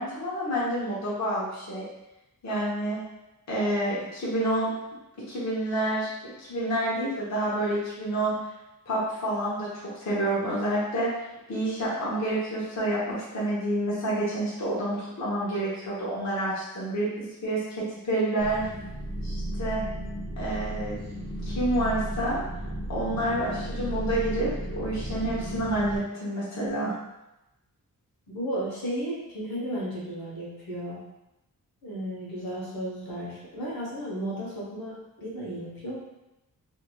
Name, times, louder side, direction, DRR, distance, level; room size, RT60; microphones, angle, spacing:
voice 1, 0.0-1.8 2.4-3.0 3.5-4.7 5.3-6.1 6.4-8.3 8.9-11.1 11.5-18.6 19.2-19.8 20.4-21.0 21.4-22.4 22.9-26.9, right 1 dB, 50° left, -8 dB, 0.9 m, -28 dB
sound 1, 18.4-26.0, right 1 dB, 15° left, 0.9 m, -34 dB
voice 2, 28.3-31.0 31.8-36.0, equal, 80° left, -6 dB, 1.0 m, -34 dB
3.0 x 2.7 x 2.2 m, 0.94 s
wide cardioid pair, 170°, 36 cm